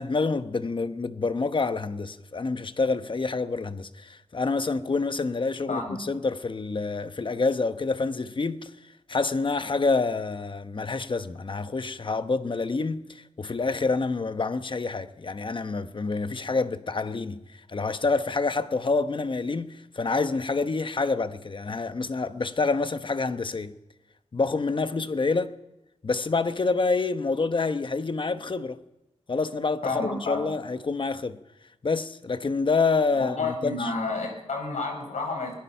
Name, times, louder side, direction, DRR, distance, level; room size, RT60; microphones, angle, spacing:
voice 1, 0.0-23.8 24.3-25.6 26.0-28.8 29.3-31.4 31.8-33.9, left 3 dB, 45° left, 1.0 m, -27 dB
voice 2, 29.8-30.5 33.2-35.5, left 3 dB, 85° left, 5.0 m, -30 dB
24.0 x 20.0 x 5.7 m
wide cardioid pair, 95°, 12 cm